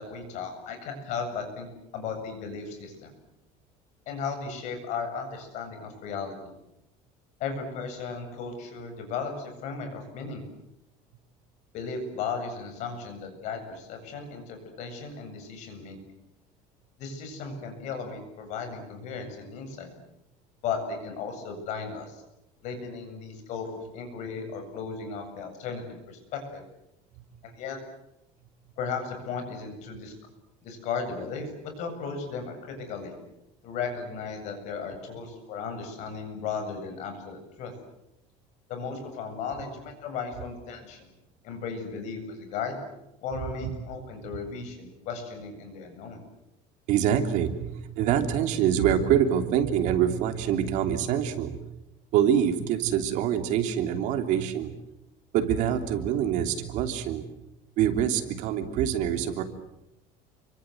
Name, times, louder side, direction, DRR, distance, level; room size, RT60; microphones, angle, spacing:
voice 1, 0.0-3.1 4.1-6.5 7.4-10.4 11.7-16.0 17.0-19.9 20.6-22.2 22.6-26.7 27.4-27.8 28.8-30.1 30.6-33.1 33.6-37.7 38.7-41.1 41.4-42.8 43.2-46.2, left 5 dB, 50° left, 5 dB, 7.7 m, -35 dB
voice 2, 46.9-51.7 52.1-54.8 55.3-57.2 57.8-59.4, right 9 dB, 55° right, 7 dB, 3.2 m, -25 dB
29.5 x 25.0 x 8.0 m, 0.87 s
cardioid pair, 175°, 15 cm